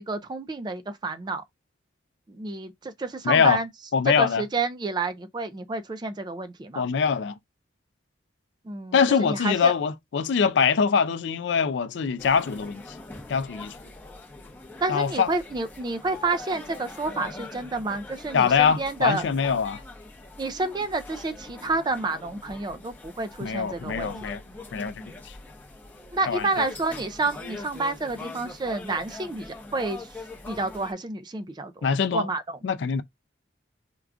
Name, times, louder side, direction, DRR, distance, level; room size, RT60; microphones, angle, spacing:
voice 1, 0.0-1.4 2.3-3.7 4.2-6.9 8.7-9.7 14.8-19.2 20.4-24.1 26.1-30.1 30.5-32.6, right 3 dB, 20° right, 0.3 m, -29 dB
voice 2, 3.2-3.6 3.9-4.4 6.8-7.4 8.9-12.8 13.3-13.7 14.9-15.3 18.3-19.8 23.4-24.4 24.7-24.9 26.3-26.7 31.8-32.3 32.6-33.0, left 6 dB, 70° left, 0.4 m, -23 dB
sound 1, 12.2-30.9, left 2 dB, 10° left, 0.7 m, -42 dB
4.5 x 2.3 x 2.4 m
head